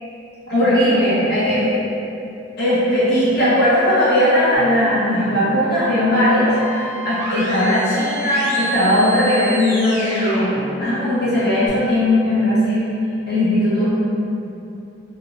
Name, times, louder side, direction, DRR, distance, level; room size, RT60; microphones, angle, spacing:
voice 1, 0.5-1.8 2.6-10.5 10.8-12.8 13.3-14.0, left 1 dB, 60° left, -13 dB, 1.2 m, -18 dB
sound 1, 4.5-11.7, equal, 85° left, 1.3 m, -31 dB
2.8 x 2.2 x 2.5 m, 2.8 s
head